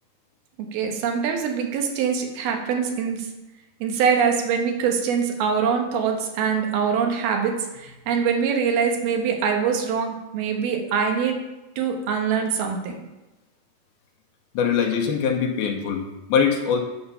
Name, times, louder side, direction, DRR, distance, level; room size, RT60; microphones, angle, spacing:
voice 1, 0.6-3.3 3.8-11.4 11.8-13.0, right 6 dB, 85° right, 3 dB, 3.1 m, -24 dB
voice 2, 14.5-16.8, left 7 dB, 85° left, 2 dB, 3.0 m, -22 dB
10.0 x 7.1 x 5.6 m, 1.0 s
omnidirectional pair, 4.3 m